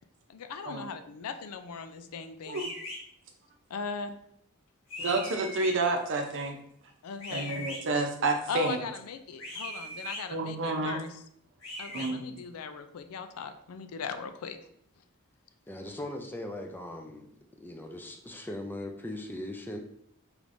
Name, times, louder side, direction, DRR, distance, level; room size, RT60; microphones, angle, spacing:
voice 1, 0.3-2.7 3.7-4.2 7.0-7.6 8.5-11.1 11.8-14.6, left 5 dB, 90° left, 9 dB, 0.4 m, -39 dB
sound 1, 2.5-3.0 4.9-5.7 7.2-7.8 9.4-10.2 11.6-12.1, left 1 dB, 65° left, 1.5 m, -39 dB
voice 2, 5.0-6.6 7.3-8.8 10.3-11.0 11.9-12.2, right 3 dB, 60° right, 4 dB, 0.7 m, -29 dB
voice 3, 15.7-19.8, left 1 dB, 10° left, 3 dB, 0.4 m, -39 dB
4.8 x 3.1 x 2.6 m, 0.70 s
head